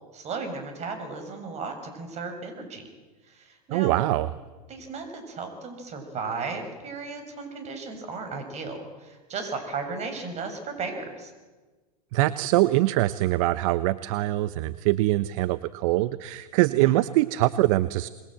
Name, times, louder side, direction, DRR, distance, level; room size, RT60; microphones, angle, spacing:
voice 1, 0.1-2.9 3.3-4.0 4.7-11.3 16.8-17.0, right 4 dB, 35° right, 6 dB, 6.5 m, -35 dB
voice 2, 3.7-4.3 12.1-18.1, right 17 dB, 55° right, 15 dB, 0.8 m, -23 dB
27.0 x 21.5 x 7.6 m, 1.3 s
hypercardioid pair, 105°, 21 cm